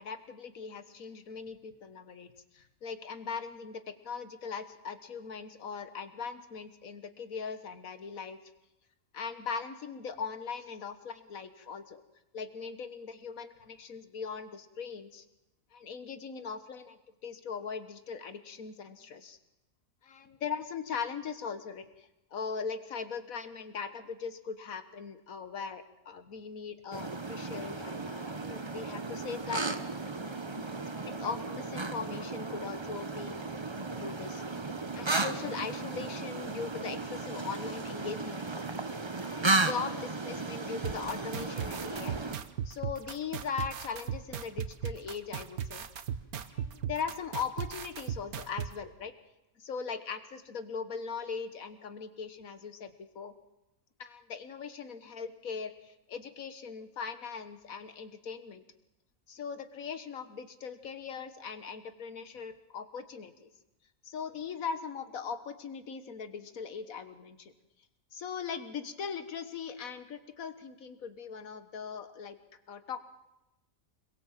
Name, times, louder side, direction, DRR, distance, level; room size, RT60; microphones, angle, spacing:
voice 1, 0.0-8.4 9.1-12.0 12.3-15.3 15.7-19.4 20.0-30.0 30.3-38.5 39.2-42.2 42.7-45.9 46.5-49.1 49.6-53.3 54.0-58.6 59.3-63.5 64.0-67.5 68.1-72.4 72.7-73.1, left 6 dB, 70° left, 10 dB, 1.8 m, -40 dB
sound 1, 26.9-42.4, right 3 dB, 20° right, 0.9 m, -35 dB
sound 2, 40.8-48.7, right 8 dB, 85° right, 1.5 m, -36 dB
25.5 x 22.0 x 7.5 m, 0.94 s
omnidirectional pair, 1.5 m